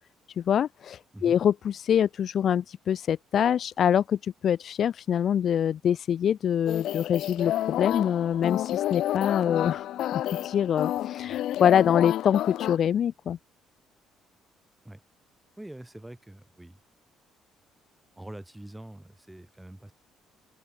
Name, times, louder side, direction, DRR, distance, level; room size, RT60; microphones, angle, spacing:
voice 1, 0.4-9.9 10.1-13.4, left 9 dB, 40° left, 0.4 m, -25 dB
sound 1, 6.7-12.8, left 13 dB, 60° left, 0.8 m, -30 dB
voice 2, 15.6-16.8 18.2-19.9, right 1 dB, 5° right, 2.0 m, -44 dB
cardioid pair, 180°, 0 cm